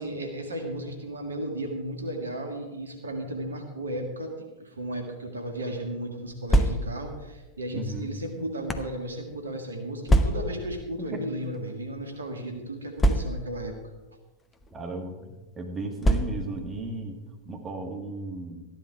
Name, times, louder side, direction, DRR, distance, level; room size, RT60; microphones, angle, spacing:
voice 1, 0.0-13.7, right 1 dB, 75° right, 3 dB, 1.8 m, -34 dB
sound 1, 6.3-7.1 7.9-9.0 10.1-10.7 11.5-11.7 12.0-12.1 13.0-13.6 14.5-14.7 16.0-16.6, right 1 dB, 15° left, 0.9 m, -24 dB
voice 2, 7.7-8.1 11.0-11.2 14.7-17.2 17.5-18.7, right 2 dB, 25° right, 3 dB, 1.8 m, -35 dB
14.0 x 10.5 x 4.7 m, 1.1 s
figure-of-eight pair, 90°, 0 cm